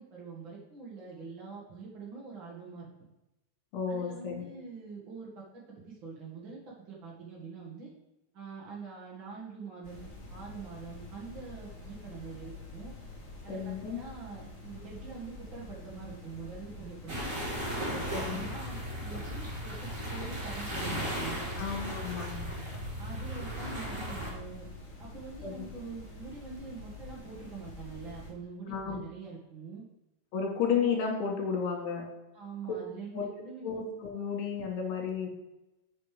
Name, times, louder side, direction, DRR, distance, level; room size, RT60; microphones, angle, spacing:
voice 1, 0.0-2.9 3.9-7.9 8.3-12.9 13.4-17.2 17.7-21.6 23.0-24.7 25.0-29.8 32.3-33.7, right 4 dB, 80° right, -4 dB, 1.0 m, -45 dB
voice 2, 3.7-4.5 13.5-14.0 18.1-18.5 21.6-22.8 25.4-25.7 28.7-29.0 30.3-32.1 33.1-33.3 33.6-35.3, left 6 dB, 65° left, 1 dB, 3.6 m, -33 dB
sound 1, 9.8-28.3, left 2 dB, 35° left, 2.1 m, -47 dB
sound 2, 17.1-24.3, equal, 20° right, 2.9 m, -36 dB
8.0 x 6.8 x 5.0 m, 0.93 s
omnidirectional pair, 5.3 m